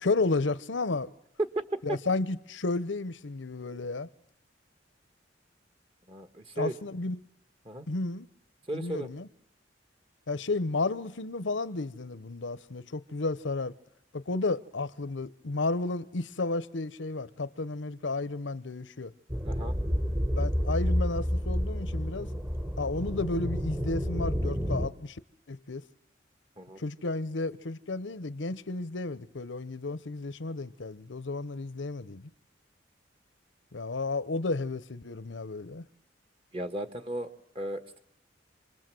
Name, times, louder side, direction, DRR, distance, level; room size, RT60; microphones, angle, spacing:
voice 1, 0.0-1.1 1.8-4.1 6.6-7.2 7.9-8.3 8.7-9.3 10.3-13.7 14.1-19.1 20.3-22.3 22.8-25.2 25.5-25.8 26.8-32.3 33.7-35.9, left 3 dB, 85° left, 0.9 m, -32 dB
voice 2, 6.1-6.7 7.6-7.9 8.7-9.1 19.4-19.7 26.6-26.8 36.5-38.0, right 1 dB, 30° right, 1.5 m, -35 dB
sound 1, 19.3-24.9, equal, 15° right, 1.2 m, -30 dB
28.5 x 21.5 x 7.7 m
head